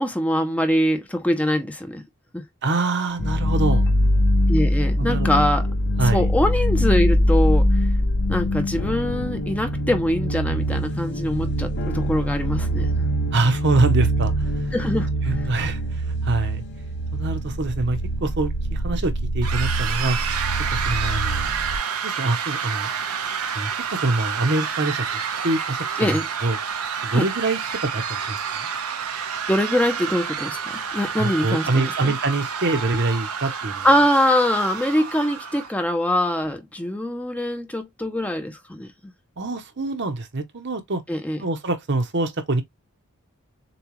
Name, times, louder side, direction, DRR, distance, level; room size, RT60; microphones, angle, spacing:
voice 1, 0.0-2.0 2.3-2.4 4.5-5.7 6.1-7.9 8.3-12.9 14.7-15.1 15.4-15.5 26.0-26.2 27.1-27.2 29.5-32.1 33.8-38.9 41.1-41.4, left 1 dB, 5° left, 0.6 m, -23 dB
voice 2, 2.6-3.9 5.0-5.4 6.0-6.3 13.3-14.7 15.2-16.6 17.1-20.2 20.7-21.5 22.0-22.9 23.5-26.6 27.0-28.7 31.2-33.9 39.4-41.0 41.4-42.6, right 2 dB, 55° right, 0.9 m, -25 dB
sound 1, 3.2-21.8, equal, 55° left, 1.2 m, -23 dB
sound 2, 19.4-35.7, right 7 dB, 90° right, 0.9 m, -29 dB
6.9 x 2.4 x 3.0 m
head